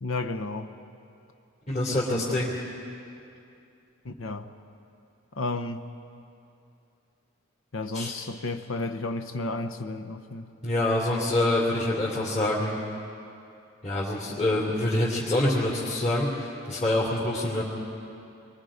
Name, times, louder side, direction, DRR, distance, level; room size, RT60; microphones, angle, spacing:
voice 1, 0.0-0.7 1.9-2.4 4.0-4.5 5.4-5.8 7.7-10.5, left 2 dB, 75° left, 7 dB, 0.9 m, -32 dB
voice 2, 1.7-2.5 7.9-8.1 10.6-12.8 13.8-17.6, left 1 dB, 35° left, -6 dB, 3.1 m, -26 dB
28.0 x 23.0 x 5.1 m, 2.6 s
head